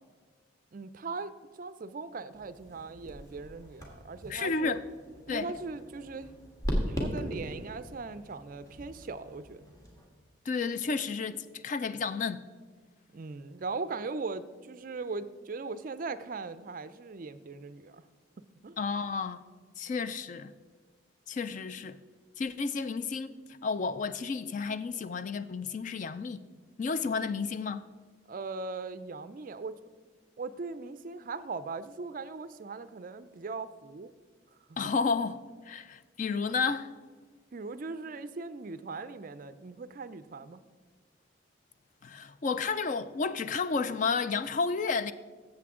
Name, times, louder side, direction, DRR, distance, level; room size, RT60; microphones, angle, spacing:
voice 1, 0.7-4.8 5.3-6.3 6.9-9.6 13.1-18.0 18.6-18.8 28.3-29.8 30.4-34.1 34.8-34.9 35.8-35.9 37.5-40.6, right 4 dB, 45° right, 0.4 m, -39 dB
sound 1, 2.3-10.1, equal, 15° left, 1.6 m, -39 dB
voice 2, 4.3-4.8 5.3-5.5 10.5-12.4 18.8-19.4 19.8-20.5 21.3-22.0 22.4-23.3 23.6-26.4 26.8-27.8 34.8-36.9 42.0-45.1, left 4 dB, 40° left, 0.3 m, -31 dB
14.5 x 7.6 x 3.7 m
head